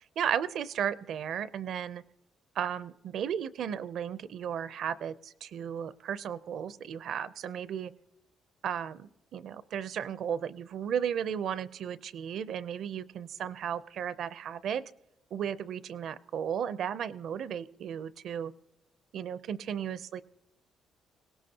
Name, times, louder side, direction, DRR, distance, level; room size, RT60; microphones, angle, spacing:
voice 1, 0.2-2.0 2.6-7.9 8.6-14.8 15.3-18.5 19.1-20.2, right 8 dB, 65° right, 16 dB, 0.5 m, -34 dB
21.5 x 17.5 x 2.8 m, 0.86 s
cardioid pair, 105°, 0 cm